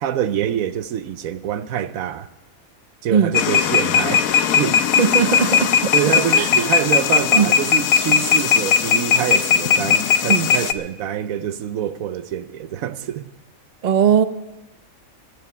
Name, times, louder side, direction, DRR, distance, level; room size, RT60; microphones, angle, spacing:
voice 1, 0.0-2.3 3.0-4.8 5.9-13.3, right 10 dB, 80° right, 1.1 m, -25 dB
sound 1, 3.3-10.7, left 7 dB, 80° left, 1.1 m, -18 dB
voice 2, 5.0-5.9 6.3-6.7 7.3-7.5 10.3-10.5 13.8-14.2, right 7 dB, 45° right, 0.6 m, -19 dB
11.0 x 10.5 x 9.4 m
omnidirectional pair, 1.5 m